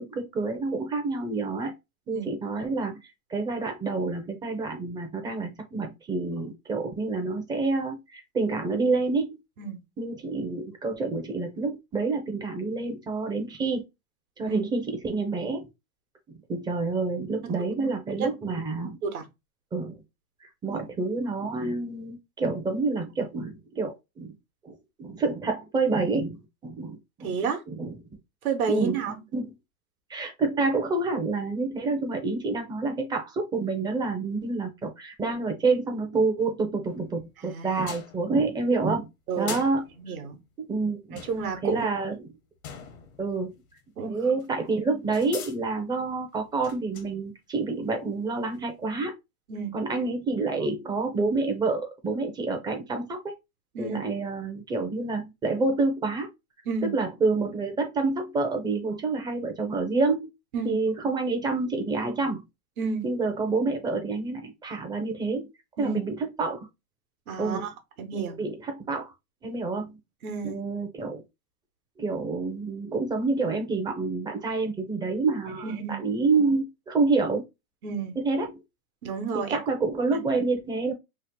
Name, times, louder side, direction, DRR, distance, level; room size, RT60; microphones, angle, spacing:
voice 1, 0.0-1.7 2.1-2.9 3.3-9.4 10.0-13.8 14.4-15.7 16.5-19.0 19.7-19.9 20.4-24.4 24.6-27.3 27.7-28.0 28.7-29.0 29.3-29.5 30.1-39.1 39.4-39.8 40.6-41.2 41.6-42.3 43.2-43.5 44.1-49.1 49.7-53.3 53.8-56.3 56.9-60.3 60.6-62.4 63.0-65.4 65.8-66.7 67.4-67.7 68.1-69.1 69.4-70.0 70.4-71.2 72.0-75.7 76.0-77.4 78.2-78.5 79.3-80.9, right 3 dB, 10° right, 0.4 m, -28 dB
voice 2, 27.2-27.6 28.4-29.2 37.4-37.9 39.3-39.6 40.0-40.4 41.3-41.8 44.0-44.2 49.5-49.7 53.7-54.0 56.7-56.9 60.5-60.7 62.8-63.1 65.8-66.0 67.3-67.7 68.0-68.4 70.2-70.6 75.4-76.0 77.8-78.2 79.0-79.6 80.1-80.2, right 5 dB, 75° right, 1.0 m, -31 dB
sound 1, 36.8-37.4 37.9-38.6 39.5-40.5 41.2-44.0 44.4-44.5 45.1-45.6 46.4-47.2 48.5-48.6, left 7 dB, 75° left, 0.9 m, -43 dB
3.0 x 2.0 x 3.5 m
hypercardioid pair, 115°, 43 cm